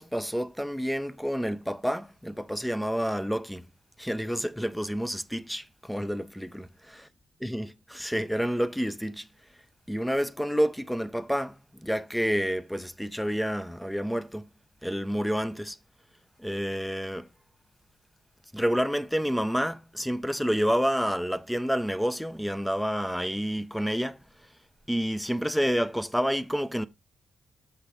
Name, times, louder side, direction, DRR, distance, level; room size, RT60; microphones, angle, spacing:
voice 1, 0.0-3.6 4.0-6.7 7.4-9.3 9.9-14.5 14.8-15.8 16.4-17.3 18.5-24.2 24.9-26.9, equal, ahead, 0.3 m, -29 dB
6.3 x 5.8 x 3.5 m
cardioid pair, 140°, 0 cm